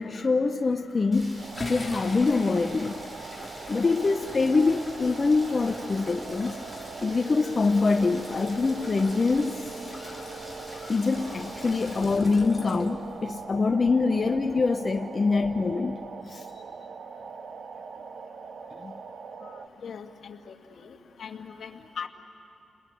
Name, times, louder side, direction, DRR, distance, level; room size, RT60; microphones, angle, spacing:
voice 1, 0.0-2.9 3.7-6.6 7.0-9.7 10.0-16.5 18.8-18.9, left 4 dB, 35° left, 0.8 m, -25 dB
sound 1, 1.1-13.4, left 2 dB, 20° left, 4.0 m, -42 dB
Rain, 1.1-12.2, equal, 25° right, 5.2 m, -46 dB
sound 2, 1.4-19.7, right 5 dB, 65° right, 1.1 m, -42 dB
voice 2, 19.8-20.9 21.2-21.7 22.0-22.1, left 6 dB, 65° left, 1.9 m, -39 dB
30.0 x 21.0 x 9.3 m
cardioid pair, 80°, 0 cm